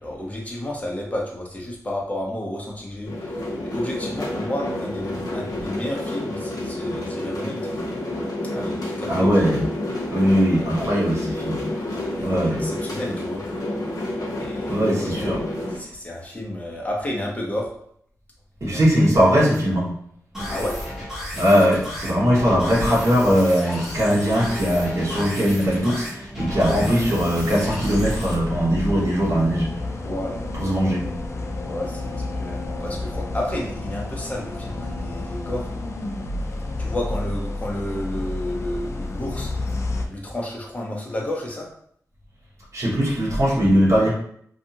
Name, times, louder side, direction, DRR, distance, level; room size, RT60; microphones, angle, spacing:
voice 1, 0.0-7.7 8.5-9.3 11.9-13.4 14.4-15.3 15.8-17.7 18.6-18.8 20.5-20.8 30.0-30.7 31.6-35.7 36.8-39.5 40.1-41.7, left 1 dB, 25° left, -1 dB, 0.7 m, -31 dB
sound 1, 3.1-15.8, left 1 dB, 85° left, 0.7 m, -29 dB
voice 2, 9.1-9.6 10.1-11.6 12.2-12.6 14.7-15.4 18.6-19.9 21.3-29.7 30.5-31.1 42.7-44.1, equal, 50° right, -5 dB, 1.1 m, -20 dB
sound 2, 20.3-28.3, equal, 5° right, 1.2 m, -33 dB
sound 3, 26.6-40.1, left 2 dB, 50° left, 0.4 m, -30 dB
2.6 x 2.4 x 2.7 m, 0.65 s
wide cardioid pair, 100°, 6 cm